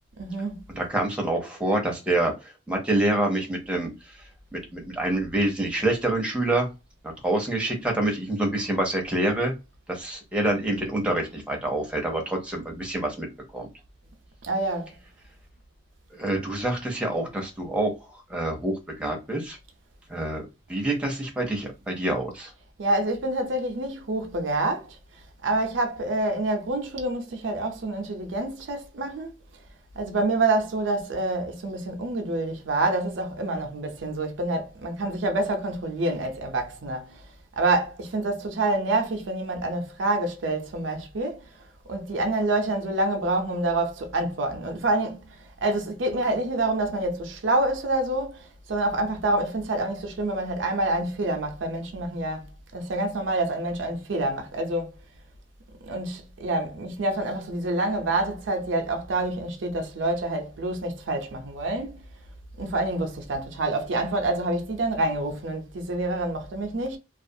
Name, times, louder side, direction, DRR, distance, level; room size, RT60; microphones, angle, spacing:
voice 1, 0.2-0.6 14.4-14.9 22.8-25.0 25.4-29.3 30.0-37.2 37.6-41.5 41.9-45.2 45.6-52.5 52.7-54.9 55.8-62.1 62.6-67.0, right 2 dB, 80° right, 0.5 m, -27 dB
voice 2, 0.7-3.9 4.5-6.7 7.2-9.5 9.9-13.3 13.5-13.7 16.1-19.6 20.1-22.5, right 1 dB, 5° right, 0.6 m, -27 dB
2.4 x 2.3 x 2.6 m
head